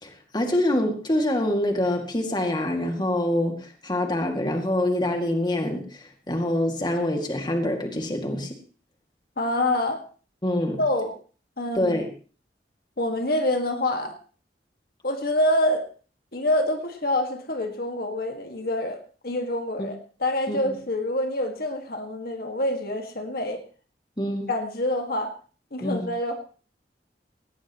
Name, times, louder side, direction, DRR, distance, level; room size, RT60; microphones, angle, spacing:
voice 1, 0.0-8.6 10.4-10.8 11.7-12.1 19.8-19.9 20.5-20.6 24.2-24.5 25.8-26.1, left 1 dB, 25° left, 4 dB, 2.3 m, -25 dB
voice 2, 9.4-10.0 10.8-11.1 11.6-12.0 13.0-14.2 15.0-15.9 16.3-23.6 24.5-25.3 25.7-26.3, left 1 dB, 55° left, 4 dB, 1.9 m, -26 dB
18.0 x 18.0 x 3.1 m, 0.38 s
head